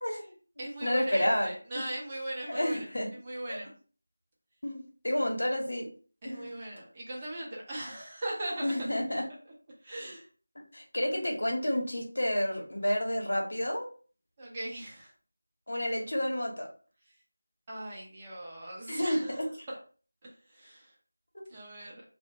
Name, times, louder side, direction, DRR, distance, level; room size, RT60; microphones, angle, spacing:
voice 1, 0.0-1.5 1.7-1.8 2.5-3.1 3.5-3.6 4.6-5.9 6.2-6.6 8.6-9.2 10.7-13.9 15.7-16.7 18.9-19.5, left 1 dB, 70° left, 0 dB, 0.8 m, -30 dB
voice 2, 0.6-3.7 6.2-8.7 9.8-10.3 14.4-15.1 17.7-19.8 20.2-20.9 21.5-22.0, right 1 dB, 15° right, -4 dB, 0.6 m, -39 dB
2.8 x 2.1 x 2.7 m, 0.40 s
figure-of-eight pair, 175°, 0 cm